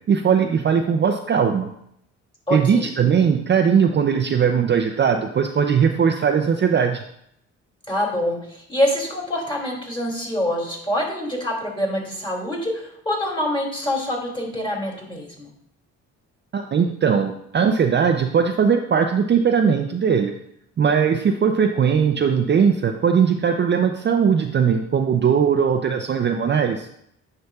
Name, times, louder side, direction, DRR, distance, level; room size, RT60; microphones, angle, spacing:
voice 1, 0.1-1.7 2.5-7.0 16.5-20.4 20.8-26.9, right 7 dB, 35° right, 5 dB, 0.5 m, -19 dB
voice 2, 2.5-2.9 7.9-15.5, left 1 dB, 15° left, -2 dB, 2.7 m, -25 dB
9.4 x 5.7 x 2.3 m, 0.74 s
cardioid pair, 90°, 30 cm